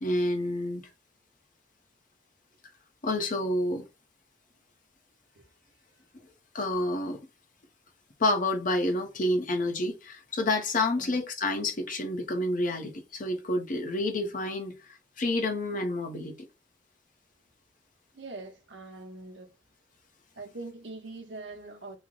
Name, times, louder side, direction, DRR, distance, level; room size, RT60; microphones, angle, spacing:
voice 1, 0.0-0.9 3.0-3.8 6.5-7.2 8.2-14.7 15.2-16.4, left 1 dB, 45° left, 0.8 m, -29 dB
voice 2, 18.1-19.5 20.4-22.0, right 3 dB, 75° right, 0.9 m, -43 dB
3.2 x 2.1 x 3.8 m
head